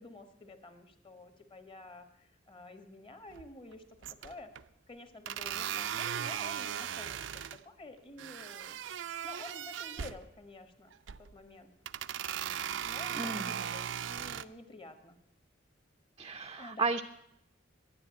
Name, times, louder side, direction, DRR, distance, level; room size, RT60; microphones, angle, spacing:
voice 1, 0.0-3.8 4.2-4.5 4.9-7.2 7.5-8.8 9.1-10.9 11.2-11.7 12.8-15.2 16.6-16.9, left 2 dB, 30° left, 8 dB, 1.4 m, -50 dB
sound 1, 3.3-3.7 4.0-4.6 5.3-7.6 8.2-10.2 10.9-11.3 11.9-14.4, right 9 dB, 85° right, 0.5 m, -38 dB
voice 2, 13.1-13.6 16.2-17.0, right 4 dB, 25° right, 7 dB, 0.5 m, -34 dB
11.0 x 9.8 x 8.5 m, 0.79 s
head